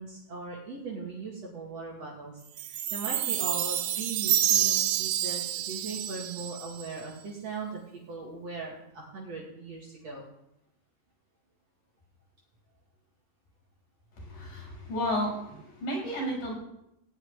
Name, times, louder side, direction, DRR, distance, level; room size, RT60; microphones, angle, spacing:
voice 1, 0.0-2.4 2.7-10.2, right 4 dB, 50° right, -3 dB, 3.3 m, -39 dB
Chime, 2.6-7.0, right 12 dB, 85° right, 2.6 m, -28 dB
voice 2, 14.1-16.5, equal, 85° left, -3 dB, 7.8 m, -32 dB
17.5 x 5.9 x 9.8 m, 0.81 s
omnidirectional pair, 3.8 m